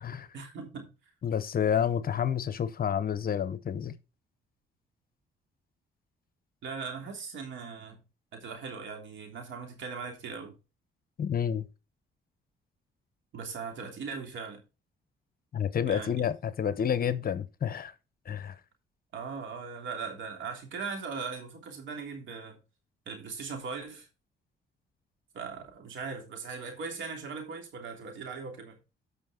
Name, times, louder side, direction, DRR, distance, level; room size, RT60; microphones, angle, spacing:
voice 1, 0.3-0.9 6.6-8.0 8.3-10.5 13.3-14.6 15.9-16.2 19.1-22.6 23.1-24.1 25.3-28.8, right 5 dB, 70° right, 3.2 m, -39 dB
voice 2, 1.2-3.9 11.2-11.7 15.5-17.9 18.3-18.5, left 8 dB, 50° left, 0.9 m, -29 dB
14.0 x 5.6 x 3.7 m
cardioid pair, 90°, 20 cm